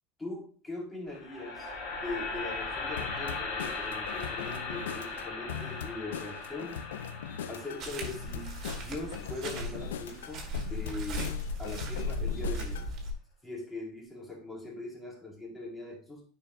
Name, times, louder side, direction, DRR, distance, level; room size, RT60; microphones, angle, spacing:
voice 1, 0.2-6.8 7.5-12.9 13.4-16.2, left 2 dB, 15° left, -3 dB, 4.2 m, -41 dB
sound 1, 1.1-11.2, left 3 dB, 60° left, 2.0 m, -39 dB
sound 2, 3.0-12.9, left 8 dB, 80° left, 0.4 m, -41 dB
sound 3, 7.8-13.1, left 1 dB, 50° right, 2.5 m, -36 dB
9.8 x 5.6 x 2.5 m, 0.40 s
hypercardioid pair, 85°, 0 cm